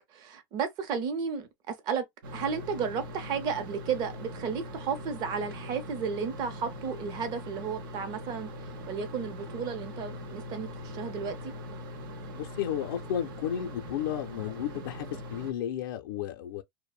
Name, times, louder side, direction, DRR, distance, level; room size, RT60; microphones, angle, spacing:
voice 1, 0.1-2.0 2.3-8.5 8.9-11.5, right 6 dB, 40° right, 0.6 m, -33 dB
sound 1, 2.2-15.5, left 1 dB, 85° right, 0.6 m, -41 dB
voice 2, 12.3-16.6, left 10 dB, 85° left, 0.4 m, -33 dB
2.6 x 2.0 x 2.3 m
supercardioid pair, 145°, 11 cm